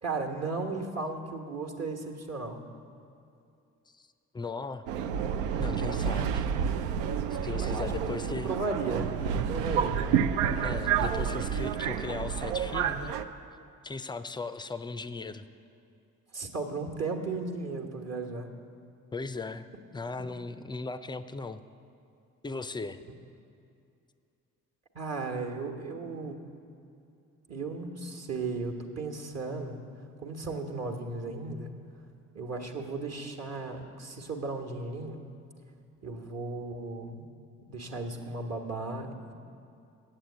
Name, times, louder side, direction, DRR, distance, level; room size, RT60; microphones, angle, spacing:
voice 1, 0.0-2.6 7.5-10.0 16.3-18.5 24.9-26.4 27.5-29.8 30.2-31.7 32.3-35.2 36.0-37.3 37.7-39.3, right 3 dB, 40° right, 2 dB, 1.3 m, -35 dB
voice 2, 4.3-4.9 5.6-6.4 7.3-8.5 10.6-13.2 13.8-15.5 19.1-19.7 19.9-21.6 22.4-23.0, left 3 dB, 10° left, 12 dB, 0.4 m, -37 dB
Subway metro underground, 4.9-13.2, right 7 dB, 75° right, 0.5 m, -29 dB
8.6 x 7.7 x 8.2 m, 2.6 s
figure-of-eight pair, 40°, 40 cm